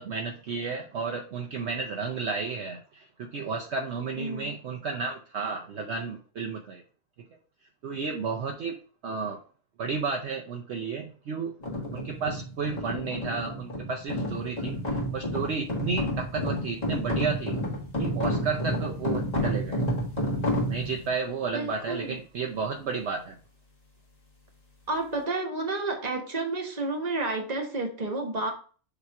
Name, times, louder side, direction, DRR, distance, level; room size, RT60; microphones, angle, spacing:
voice 1, 0.0-6.8 7.8-8.8 9.0-9.4 9.8-11.5 11.9-17.6 18.0-19.8 20.7-23.4, right 5 dB, 60° right, 2 dB, 0.9 m, -32 dB
voice 2, 4.2-4.6 21.5-22.1 24.9-28.5, right 2 dB, 35° right, 2 dB, 1.3 m, -31 dB
sound 1, 11.6-21.1, equal, 30° left, 1.9 m, -30 dB
6.8 x 3.0 x 4.7 m, 0.40 s
omnidirectional pair, 1.4 m